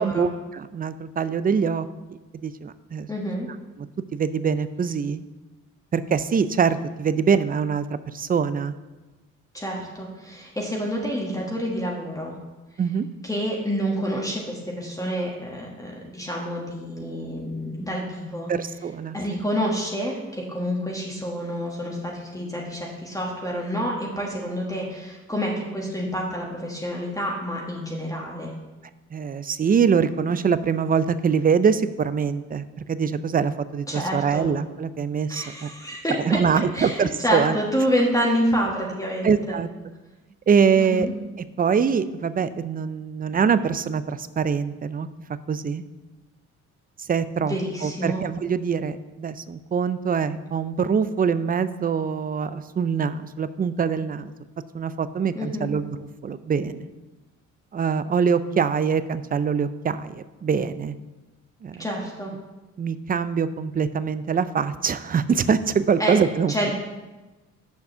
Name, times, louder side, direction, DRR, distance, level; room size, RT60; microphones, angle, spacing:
voice 1, 0.0-1.9 2.3-3.1 4.1-5.2 5.9-7.9 8.1-8.7 12.8-13.1 18.5-19.2 29.1-35.7 36.2-37.6 39.2-39.7 40.5-41.1 41.6-45.1 45.5-45.8 47.0-47.6 47.8-54.3 54.7-56.0 56.2-56.9 57.7-61.0 61.6-61.9 62.8-66.5, right 6 dB, 30° right, 14 dB, 0.4 m, -24 dB
voice 2, 3.1-3.5 9.5-12.3 13.2-18.5 19.1-28.5 33.9-34.5 35.3-36.4 36.7-39.6 40.8-41.1 47.4-48.2 55.3-55.7 61.8-62.3 66.0-66.2 66.5-66.7, equal, 10° left, -2 dB, 1.4 m, -28 dB
6.8 x 5.4 x 6.6 m, 1.2 s
cardioid pair, 90°, 30 cm